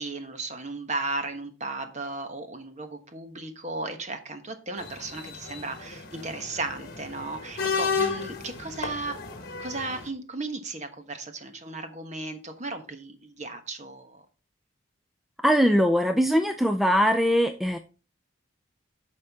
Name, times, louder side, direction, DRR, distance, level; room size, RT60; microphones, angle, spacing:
voice 1, 0.0-9.2 9.6-14.2, right 3 dB, 35° right, 7 dB, 1.2 m, -35 dB
sound 1, 4.8-10.1, left 5 dB, 45° left, 1.4 m, -33 dB
voice 2, 15.4-17.8, equal, ahead, 7 dB, 0.4 m, -21 dB
9.6 x 6.5 x 3.6 m, 0.33 s
head